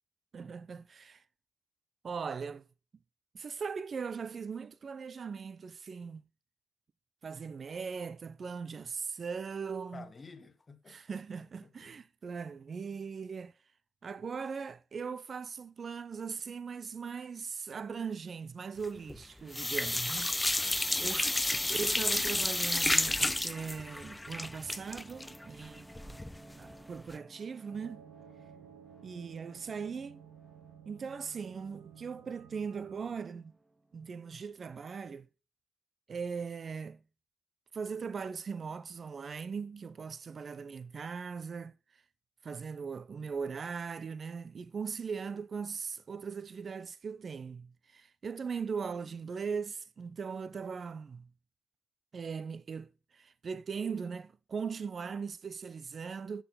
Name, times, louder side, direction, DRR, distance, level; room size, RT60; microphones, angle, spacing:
voice 1, 0.3-1.2 2.0-2.7 3.3-6.2 7.2-10.1 10.9-13.5 14.0-20.7 21.0-21.3 21.7-26.2 26.6-28.0 29.0-30.2 30.9-33.5 33.9-35.3 36.1-37.0 37.7-41.7 42.4-51.3 52.1-56.4, right 5 dB, 45° right, 0.6 m, -39 dB
voice 2, 9.9-11.0 11.6-11.9 20.5-21.2, left 4 dB, 35° left, 1.0 m, -52 dB
sound 1, 18.8-19.2 19.5-26.4 26.7-26.8 27.1-27.2, left 1 dB, 10° left, 0.3 m, -31 dB
sound 2, 19.2-34.7, right 1 dB, 15° right, 1.3 m, -57 dB
sound 3, 27.7-33.1, right 9 dB, 85° right, 1.3 m, -55 dB
7.0 x 6.4 x 5.5 m
supercardioid pair, 60°, 0 cm